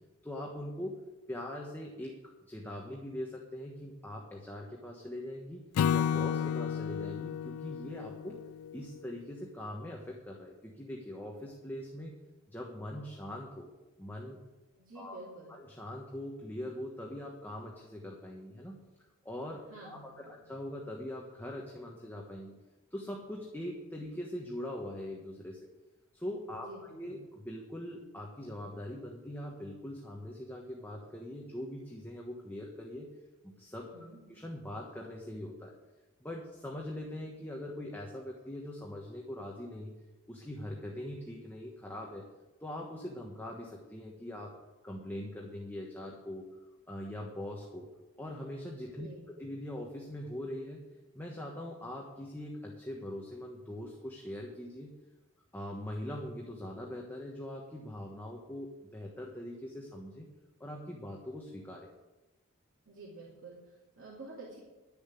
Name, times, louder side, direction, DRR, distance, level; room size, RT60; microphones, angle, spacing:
voice 1, 0.2-1.0 1.3-2.2 2.5-5.6 5.9-8.4 8.7-12.2 12.5-13.7 14.0-14.4 14.9-15.2 15.5-18.8 19.2-22.5 22.9-25.7 26.1-33.1 33.4-33.9 34.3-35.7 36.2-42.2 42.6-44.6 44.8-46.5 46.9-47.9 48.2-49.1 49.4-50.8 51.1-54.9 55.5-60.3 60.6-61.9, left 1 dB, 10° left, -1 dB, 1.2 m, -42 dB
Acoustic guitar / Strum, 5.8-9.1, left 8 dB, 90° left, 0.3 m, -32 dB
voice 2, 14.7-15.6 19.7-20.4 26.5-27.2 33.8-34.2 49.0-49.3 62.9-64.6, right 2 dB, 60° right, -6 dB, 2.8 m, -49 dB
11.0 x 7.1 x 8.4 m, 1.1 s
head